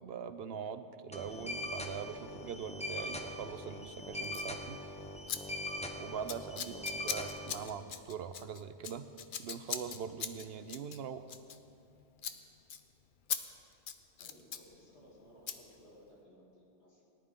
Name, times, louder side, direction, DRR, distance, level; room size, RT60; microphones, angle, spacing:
voice 1, 0.0-4.8 6.0-9.1 9.4-11.2, right 7 dB, 70° right, 11 dB, 0.8 m, -42 dB
sound 1, 1.1-7.7, left 1 dB, 5° left, 0.7 m, -41 dB
Scissors, 4.2-4.5 5.3-5.4 5.7-5.9 6.3-11.9 12.2-12.4 12.7-12.8 13.3-13.4 13.7-14.7 15.5-15.6, left 8 dB, 55° left, 0.7 m, -40 dB
voice 2, 14.2-17.1, equal, 85° left, -5 dB, 3.2 m, -59 dB
18.5 x 11.0 x 3.7 m, 2.6 s
omnidirectional pair, 1.1 m